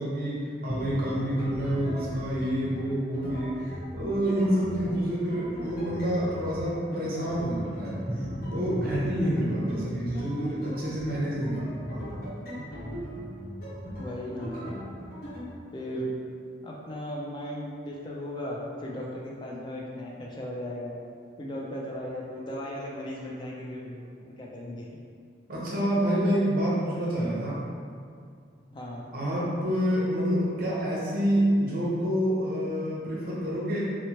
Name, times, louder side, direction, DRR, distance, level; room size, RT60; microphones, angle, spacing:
voice 1, 0.0-8.0 8.4-12.2 25.5-27.6 29.1-33.9, equal, 50° right, -6 dB, 0.7 m, -28 dB
sound 1, 0.7-15.5, equal, 50° left, 0.9 m, -38 dB
voice 2, 8.5-8.9 13.8-14.7 15.7-16.2 16.6-20.9 21.4-24.9 28.7-29.0, equal, 25° left, -3 dB, 0.3 m, -36 dB
3.0 x 2.1 x 2.8 m, 2.2 s
head